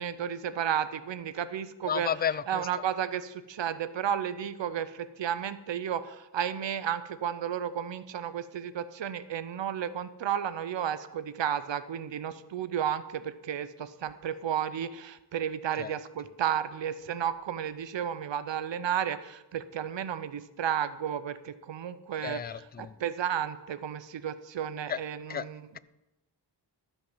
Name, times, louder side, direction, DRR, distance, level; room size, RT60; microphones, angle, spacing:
voice 1, 0.0-2.1 2.5-25.7, right 9 dB, 80° right, 0.8 m, -33 dB
voice 2, 1.9-2.7 15.8-15.9 22.2-22.9 24.9-25.0 25.3-25.5, left 8 dB, 25° left, 0.3 m, -32 dB
13.0 x 5.6 x 7.3 m
wide cardioid pair, 80°, 43 cm